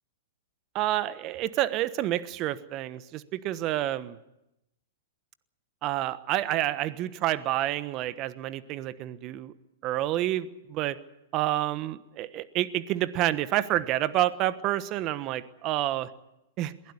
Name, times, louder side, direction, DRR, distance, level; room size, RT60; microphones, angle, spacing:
voice 1, 0.7-4.2 5.8-9.5 9.8-11.0 11.3-16.1 16.6-16.7, right 14 dB, 40° right, 14 dB, 1.2 m, -28 dB
22.0 x 16.5 x 9.6 m, 0.89 s
hypercardioid pair, 115°, 0 cm